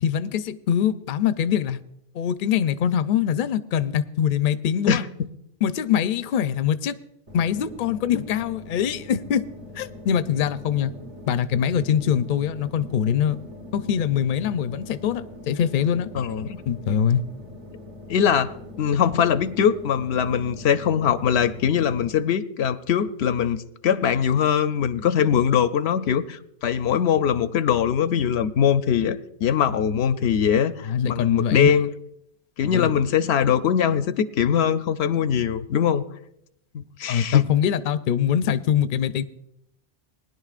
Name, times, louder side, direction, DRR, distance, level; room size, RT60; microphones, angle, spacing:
voice 1, 0.0-1.8 2.1-5.0 5.6-6.9 7.3-9.5 9.8-10.9 11.3-13.4 13.7-16.1 16.7-17.2 30.9-31.7 32.7-32.9 37.1-39.2, left 9 dB, 60° left, 12 dB, 0.6 m, -23 dB
voice 2, 4.9-5.3 16.1-16.6 18.1-23.6 23.8-31.9 32.6-36.0 36.7-37.5, left 8 dB, 80° left, 12 dB, 0.8 m, -22 dB
sound 1, 7.3-22.1, left 1 dB, 45° right, 1.3 m, -42 dB
20.5 x 10.5 x 2.4 m, 0.78 s
omnidirectional pair, 1.1 m